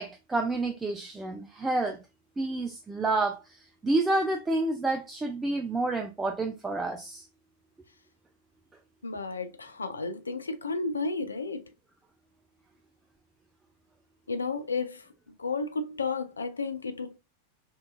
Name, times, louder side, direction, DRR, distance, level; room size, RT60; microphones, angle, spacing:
voice 1, 0.0-2.0 2.4-7.2, right 2 dB, 10° right, 0.3 m, -29 dB
voice 2, 9.0-11.7 14.3-17.2, left 4 dB, 75° left, 0.3 m, -33 dB
2.7 x 2.2 x 2.4 m
figure-of-eight pair, 90°, 0 cm